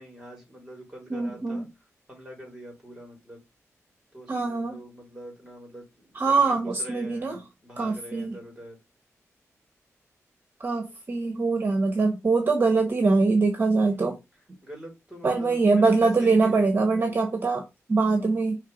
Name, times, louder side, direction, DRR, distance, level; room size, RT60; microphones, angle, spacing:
voice 1, 0.0-1.7 2.1-3.4 4.1-8.8 13.9-14.2 14.6-17.2 18.0-18.3, equal, 10° right, 4.0 m, -44 dB
voice 2, 1.1-1.7 4.3-4.8 6.1-7.4 7.8-8.4 10.6-14.1 15.2-18.6, right 3 dB, 40° right, 1.1 m, -23 dB
5.4 x 3.5 x 5.0 m
wide cardioid pair, 125°, 5 cm